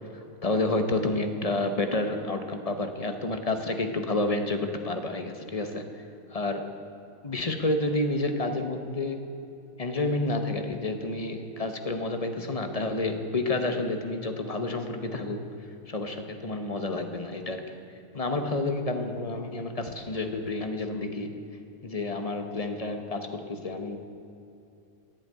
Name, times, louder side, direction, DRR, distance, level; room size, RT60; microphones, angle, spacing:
voice 1, 0.1-5.8 6.3-6.7 7.2-9.2 9.8-15.5 15.9-17.7 18.1-21.4 21.8-24.0, left 2 dB, 30° left, 6 dB, 0.8 m, -29 dB
14.5 x 8.2 x 9.3 m, 2.7 s
omnidirectional pair, 1.8 m